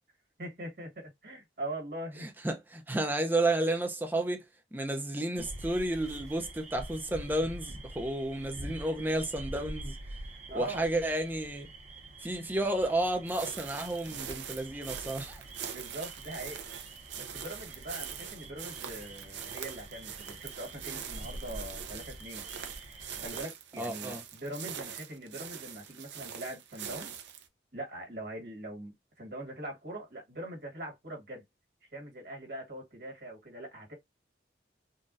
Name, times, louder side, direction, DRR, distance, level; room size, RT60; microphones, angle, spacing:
voice 1, 0.4-2.3 10.5-10.9 15.7-16.6 17.1-22.4 23.2-27.1 27.7-31.4 31.9-33.9, right 1 dB, 55° right, 1.6 m, -42 dB
voice 2, 2.2-4.4 4.7-9.9 10.5-11.7 12.2-15.4 23.8-24.2, right 1 dB, 10° right, 0.5 m, -31 dB
sound 1, 5.4-23.4, right 1 dB, 40° right, 0.8 m, -46 dB
sound 2, 13.3-27.5, right 8 dB, 75° right, 0.6 m, -43 dB
3.9 x 2.3 x 2.5 m
head